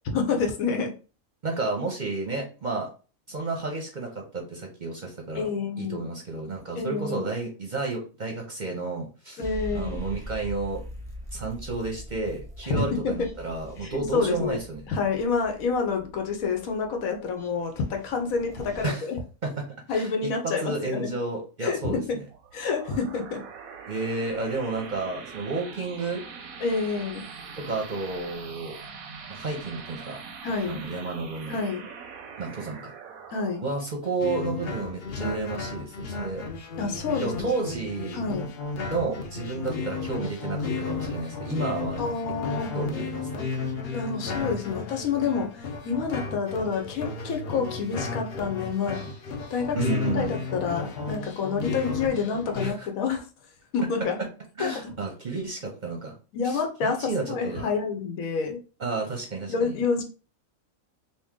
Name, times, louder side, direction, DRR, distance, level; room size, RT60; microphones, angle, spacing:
voice 1, 0.1-0.9 5.3-6.1 6.7-7.3 9.4-10.0 12.6-13.3 13.8-14.6 14.9-19.2 19.9-21.1 21.6-22.2 22.5-23.4 26.6-27.3 30.4-30.8 31.5-31.8 33.3-33.6 36.8-37.5 38.1-38.5 42.0-42.7 43.9-49.0 49.5-53.3 53.7-54.2 54.6-54.7 56.3-58.6 59.5-60.0, left 5 dB, 80° left, 4 dB, 1.2 m, -28 dB
voice 2, 1.4-2.9 3.3-5.5 5.8-9.4 9.7-10.8 11.3-14.8 18.8-19.1 19.4-19.5 19.9-20.3 20.6-22.2 23.9-26.2 27.6-28.8 29.3-30.2 30.6-31.6 32.4-32.8 33.6-36.4 37.2-38.2 38.9-42.0 42.5-43.4 49.7-50.4 52.6-52.9 54.6-56.1 56.4-57.7 58.8-59.7, right 3 dB, 45° right, 1 dB, 0.7 m, -31 dB
sound 1, 9.4-18.8, equal, 5° left, 0.6 m, -42 dB
sound 2, 22.3-35.4, right 5 dB, 90° right, 1.1 m, -43 dB
sound 3, 34.2-52.7, left 4 dB, 55° left, 0.7 m, -33 dB
3.0 x 2.7 x 3.6 m, 0.35 s
omnidirectional pair, 1.4 m